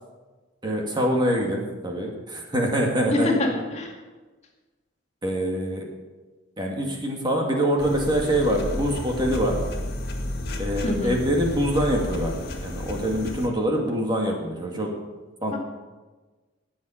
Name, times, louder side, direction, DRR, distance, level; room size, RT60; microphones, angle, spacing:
voice 1, 0.6-3.3 5.2-5.9 6.6-9.6 10.6-12.3 12.6-14.9 15.4-15.6, equal, 20° right, 0 dB, 1.9 m, -24 dB
voice 2, 3.1-3.9 10.8-11.2 15.5-15.6, left 2 dB, 35° left, 0 dB, 2.2 m, -25 dB
sound 1, 7.8-13.5, left 1 dB, 50° left, 1.7 m, -32 dB
19.0 x 7.4 x 5.7 m, 1.3 s
head